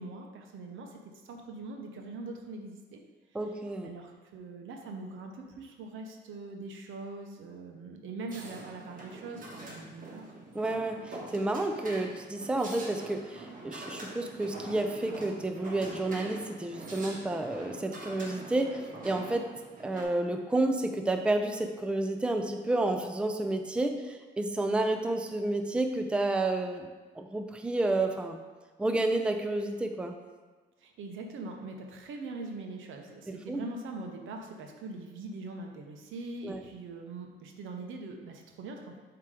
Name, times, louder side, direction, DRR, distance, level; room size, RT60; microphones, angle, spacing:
voice 1, 0.0-3.0 3.8-10.3 30.8-39.0, right 3 dB, 80° right, 3 dB, 0.9 m, -42 dB
voice 2, 3.3-3.9 10.5-19.5 19.8-26.9 27.2-28.4 28.8-30.1 33.5-33.6 36.4-36.6, right 2 dB, 5° right, 5 dB, 0.5 m, -30 dB
sound 1, 8.3-20.0, right 2 dB, 45° right, 1.5 m, -44 dB
7.3 x 3.0 x 4.9 m, 1.3 s
cardioid pair, 90°, 20 cm